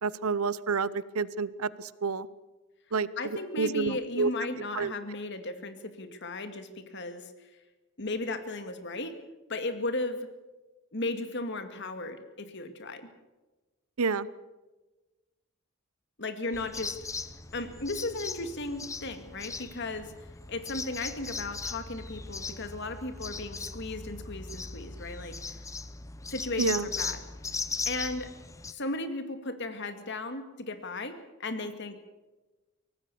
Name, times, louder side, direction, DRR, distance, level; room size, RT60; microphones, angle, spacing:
voice 1, 0.0-2.3 2.9-3.1 3.6-4.3 4.7-4.9 14.0-14.3 26.6-26.9, right 4 dB, 90° right, 18 dB, 0.8 m, -29 dB
voice 2, 3.2-7.5 8.0-9.2 9.5-10.3 10.9-13.1 16.2-17.0 17.5-20.1 20.5-25.6 26.3-27.2 27.9-28.3 28.7-32.0, left 2 dB, 55° left, 8 dB, 2.1 m, -35 dB
sound 1, 16.5-28.7, left 4 dB, 15° left, 0.8 m, -38 dB
24.0 x 18.0 x 7.0 m, 1.1 s
head